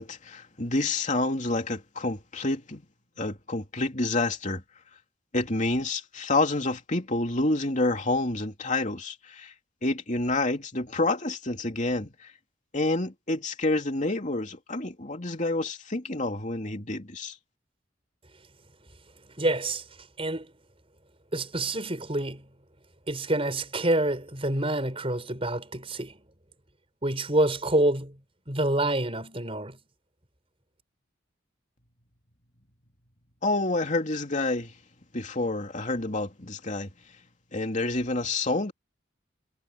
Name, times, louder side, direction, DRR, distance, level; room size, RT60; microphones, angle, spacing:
voice 1, 0.0-2.8 3.2-4.6 5.3-9.5 9.8-12.3 12.7-17.4 33.4-34.7 35.1-36.9 37.5-38.7, left 2 dB, 40° left, 3.0 m, -28 dB
voice 2, 19.4-19.8 20.2-20.5 21.3-22.4 23.1-26.1 27.0-28.1 28.5-29.8, right 1 dB, 30° right, 5.8 m, -27 dB
head